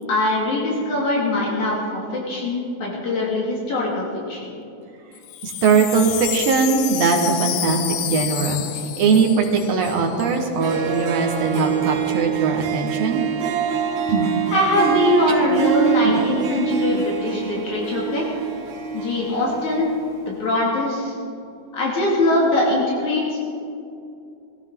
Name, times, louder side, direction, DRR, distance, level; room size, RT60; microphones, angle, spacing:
voice 1, 0.1-4.4 14.5-18.4 18.9-19.9 20.3-21.1 21.7-23.4, left 2 dB, 70° left, -4 dB, 3.6 m, -22 dB
Wind chime, 5.2-10.4 10.6-10.7 10.9-11.4, left 12 dB, 90° left, 1.3 m, -29 dB
voice 2, 5.4-13.2 14.1-14.3 15.3-15.6 16.0-16.2, right 4 dB, 60° right, 2 dB, 2.3 m, -20 dB
Harp, 10.3-10.4 10.6-20.1, right 9 dB, 80° right, 1.1 m, -25 dB
21.0 x 14.5 x 3.7 m, 2.6 s
omnidirectional pair, 3.5 m